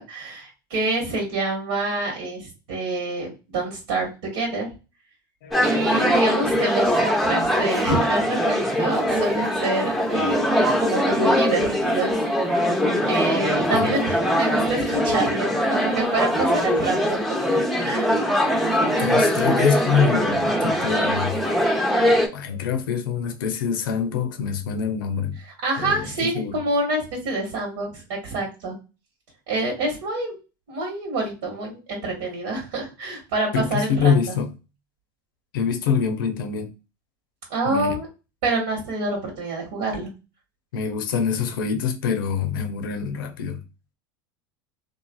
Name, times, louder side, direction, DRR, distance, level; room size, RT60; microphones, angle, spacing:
voice 1, 0.0-4.7 5.6-10.5 10.8-12.1 13.0-17.2 17.8-18.1 25.6-28.7 29.5-30.3 30.7-34.1 37.5-38.1 38.4-40.1, right 2 dB, 75° right, 1.3 m, -27 dB
voice 2, 5.4-5.8 13.7-14.0 17.8-17.9 19.0-21.4 22.3-25.4 25.8-26.6 33.5-34.5 35.5-36.7 37.6-38.0 40.7-43.6, left 6 dB, 80° left, 0.6 m, -25 dB
sound 1, 5.5-22.3, equal, ahead, 0.6 m, -22 dB
3.1 x 2.4 x 2.2 m
supercardioid pair, 105°, 11 cm